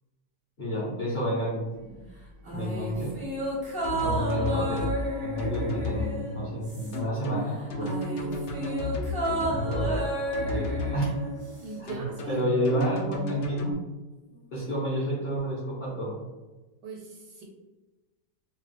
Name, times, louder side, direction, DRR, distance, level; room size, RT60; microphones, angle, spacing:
voice 1, 0.6-2.1 2.4-3.2 4.0-4.9 5.2-7.9 9.5-10.1 10.4-11.1 11.8-11.9 12.3-13.8 14.2-16.2, equal, 45° left, -7 dB, 0.6 m, -30 dB
sound 1, 2.4-7.2 7.5-11.8 12.1-12.2, right 1 dB, 25° right, 0.4 m, -32 dB
sound 2, 3.8-5.0 5.4-6.0 6.9-9.9 10.3-11.0 11.9-13.7, left 2 dB, 85° left, 0.6 m, -32 dB
voice 2, 11.6-12.4 16.8-17.4, right 4 dB, 80° right, -1 dB, 1.2 m, -40 dB
2.9 x 2.3 x 3.2 m, 1.2 s
omnidirectional pair, 1.8 m